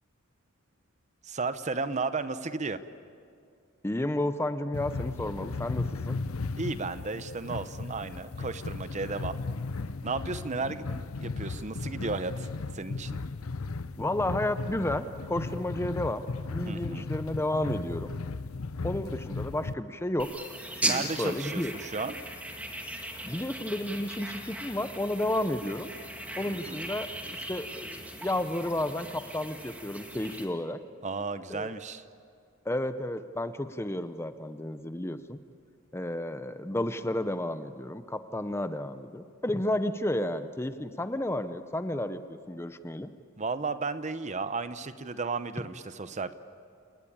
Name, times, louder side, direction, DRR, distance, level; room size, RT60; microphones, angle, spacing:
voice 1, 1.2-2.8 6.6-9.4 10.0-12.5 12.7-13.2 16.7-17.0 20.8-22.1 26.5-26.8 31.0-32.0 43.4-46.3, right 4 dB, 35° right, 12 dB, 0.7 m, -34 dB
voice 2, 3.8-6.2 14.0-18.1 18.8-20.4 20.7-21.7 23.2-25.9 26.4-30.8 31.5-31.7 32.6-35.4 35.9-43.1, left 1 dB, 10° left, 11 dB, 0.7 m, -32 dB
sound 1, 4.7-19.7, left 3 dB, 80° left, 0.7 m, -36 dB
sound 2, 20.2-30.5, right 1 dB, 5° right, 2.0 m, -38 dB
29.0 x 19.0 x 8.6 m, 2.3 s
head